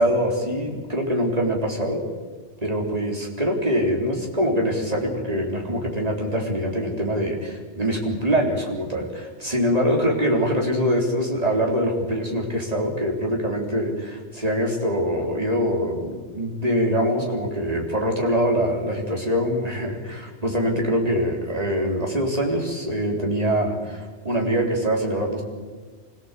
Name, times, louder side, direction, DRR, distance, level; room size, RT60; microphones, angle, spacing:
voice 1, 0.0-2.0 2.6-25.4, equal, 30° right, 0 dB, 3.9 m, -24 dB
25.5 x 16.5 x 8.3 m, 1.4 s
omnidirectional pair, 1.4 m